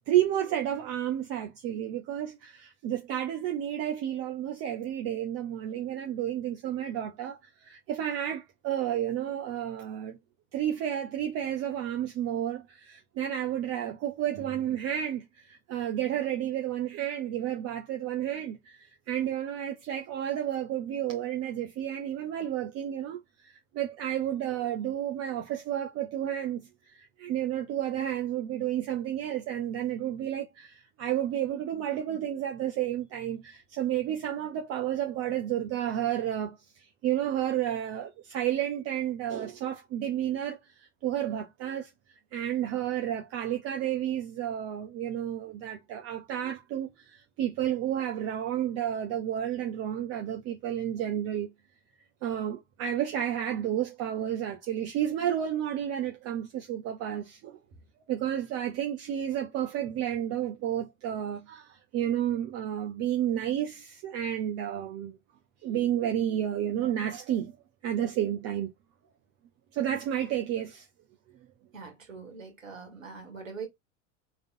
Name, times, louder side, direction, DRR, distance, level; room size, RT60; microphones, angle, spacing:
voice 1, 0.1-10.2 10.5-26.7 26.9-41.9 42.3-51.5 52.2-57.6 58.1-65.2 65.6-67.5 67.8-68.7 69.7-70.9, right 11 dB, 40° right, 0.9 m, -31 dB
voice 2, 71.7-73.7, right 5 dB, 80° right, 1.9 m, -42 dB
4.0 x 3.4 x 2.6 m
figure-of-eight pair, 85°, 39 cm